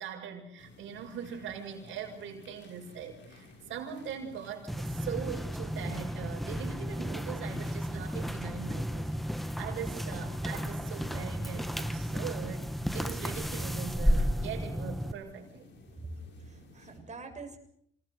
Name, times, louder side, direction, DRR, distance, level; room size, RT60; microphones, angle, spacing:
voice 1, 0.0-9.1 9.6-12.7 12.9-15.7, right 8 dB, 80° right, 2 dB, 6.8 m, -41 dB
sound 1, 0.6-17.0, left 3 dB, 65° left, 6.8 m, -55 dB
sound 2, 4.7-15.1, equal, ahead, 1.5 m, -33 dB
voice 2, 16.0-17.6, right 2 dB, 35° right, 4 dB, 6.7 m, -44 dB
27.5 x 19.5 x 6.8 m, 0.71 s
cardioid pair, 90°, 20 cm